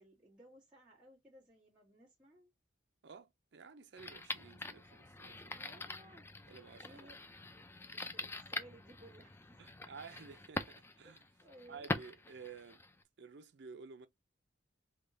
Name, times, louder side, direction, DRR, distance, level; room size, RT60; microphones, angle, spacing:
voice 1, 0.0-2.5 5.4-6.3 6.8-9.7 11.0-11.9, right 1 dB, 5° right, 1.3 m, -60 dB
voice 2, 3.0-5.9 6.5-7.1 9.6-11.2 11.7-12.8 13.2-14.1, right 5 dB, 55° right, 0.4 m, -53 dB
sound 1, 4.0-13.0, left 2 dB, 10° left, 0.3 m, -44 dB
3.5 x 2.2 x 3.7 m
head